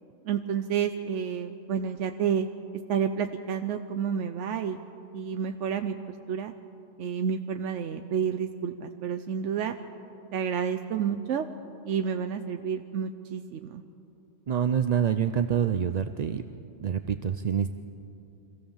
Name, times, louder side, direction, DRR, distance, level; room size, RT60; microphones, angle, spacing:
voice 1, 0.2-2.5 2.9-4.8 5.1-6.5 7.0-9.7 10.3-11.5 11.8-13.8, right 7 dB, 85° right, 6 dB, 1.0 m, -30 dB
voice 2, 14.5-16.4 16.8-17.7, right 8 dB, 50° right, 9 dB, 0.5 m, -26 dB
25.5 x 15.5 x 7.2 m, 2.8 s
omnidirectional pair, 1.2 m